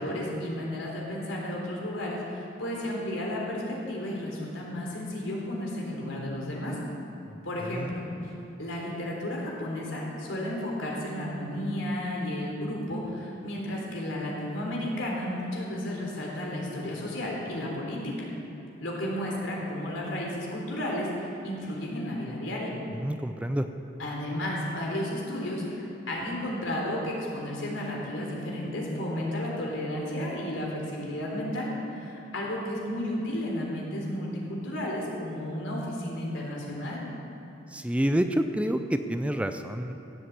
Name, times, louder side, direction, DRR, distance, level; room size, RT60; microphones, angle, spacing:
voice 1, 0.0-6.8 7.4-8.0 8.6-18.3 18.8-22.7 24.0-37.0, left 1 dB, 85° left, -3 dB, 3.7 m, -33 dB
voice 2, 22.9-23.7 37.7-39.9, right 1 dB, 5° right, 7 dB, 0.4 m, -28 dB
15.5 x 8.1 x 8.3 m, 3.0 s
head